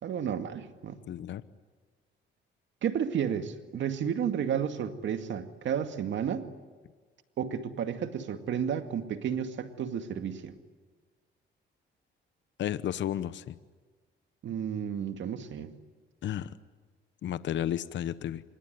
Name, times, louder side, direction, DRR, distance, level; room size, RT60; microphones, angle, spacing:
voice 1, 0.0-1.0 2.8-6.5 7.4-10.5 14.4-15.7, right 8 dB, 70° right, 8 dB, 2.2 m, -32 dB
voice 2, 1.1-1.4 12.6-13.6 16.2-16.5 17.2-18.4, left 11 dB, 65° left, 15 dB, 1.0 m, -32 dB
26.5 x 22.5 x 9.4 m, 1.4 s
cardioid pair, 90°, 20 cm